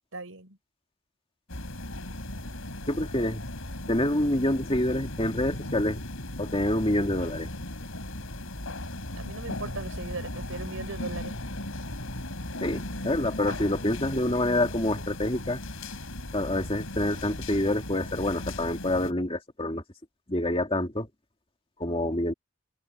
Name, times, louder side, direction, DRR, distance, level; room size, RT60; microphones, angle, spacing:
voice 1, 0.1-0.6 9.2-11.4, right 3 dB, 75° right, 4.2 m, -38 dB
sound 1, 1.5-19.1, left 1 dB, 75° left, 4.5 m, -37 dB
voice 2, 2.9-3.4 3.9-6.0 6.4-7.5 12.6-15.6 16.3-19.8 20.3-21.1 21.8-22.3, left 1 dB, 25° left, 2.7 m, -27 dB
open air
head